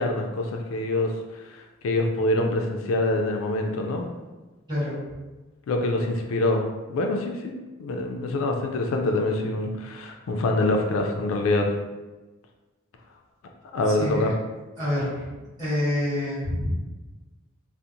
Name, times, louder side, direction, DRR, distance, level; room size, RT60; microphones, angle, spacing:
voice 1, 0.0-4.1 5.7-6.6 6.9-7.5 7.8-11.7 13.7-14.3, left 2 dB, 75° left, 3 dB, 0.3 m, -25 dB
voice 2, 13.9-14.3 14.8-15.3 15.6-16.7, left 1 dB, 20° right, -11 dB, 1.4 m, -27 dB
2.8 x 2.0 x 2.5 m, 1.2 s
head